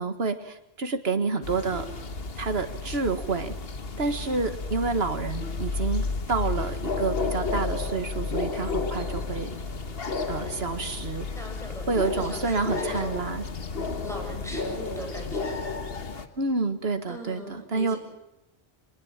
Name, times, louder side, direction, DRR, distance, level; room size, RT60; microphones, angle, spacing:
voice 1, 0.0-1.9 2.4-3.5 4.0-9.6 10.3-11.3 11.9-13.4 16.4-18.0, right 4 dB, 75° right, 9 dB, 1.9 m, -29 dB
sound 1, 1.4-16.3, left 3 dB, 70° left, 1.6 m, -32 dB
voice 2, 11.3-13.3 14.0-15.6 17.1-18.0, left 1 dB, 5° left, 0 dB, 7.1 m, -39 dB
24.5 x 19.5 x 7.4 m, 0.90 s
omnidirectional pair, 1.1 m